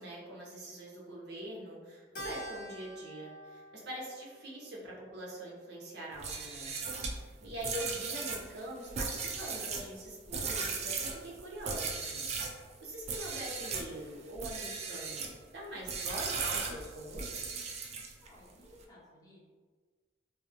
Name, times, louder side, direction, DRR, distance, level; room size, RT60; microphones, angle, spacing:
voice 1, 0.0-6.7 7.4-12.3 12.8-17.5, right 1 dB, 65° right, -4 dB, 0.7 m, -44 dB
Keyboard (musical), 2.2-6.7, equal, 70° left, 0.7 m, -48 dB
sound 1, 6.1-12.6 13.0-13.9 14.3-15.4 15.9-18.3, right 4 dB, 40° right, 0.3 m, -37 dB
voice 2, 18.2-19.5, left 1 dB, 20° left, -7 dB, 0.7 m, -58 dB
2.8 x 2.0 x 2.4 m, 1.5 s
head